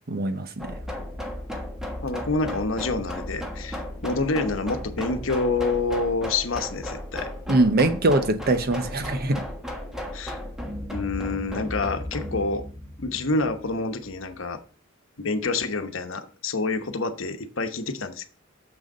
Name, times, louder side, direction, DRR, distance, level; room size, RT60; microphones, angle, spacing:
voice 1, 0.1-0.8 7.5-9.4, right 2 dB, 50° right, 0.9 m, -22 dB
sound 1, 0.6-14.3, left 1 dB, 5° right, 1.3 m, -35 dB
voice 2, 2.0-7.3 10.1-10.4 10.9-12.7 13.0-14.6 15.2-18.3, left 3 dB, 70° left, 1.0 m, -27 dB
7.0 x 6.4 x 5.3 m
head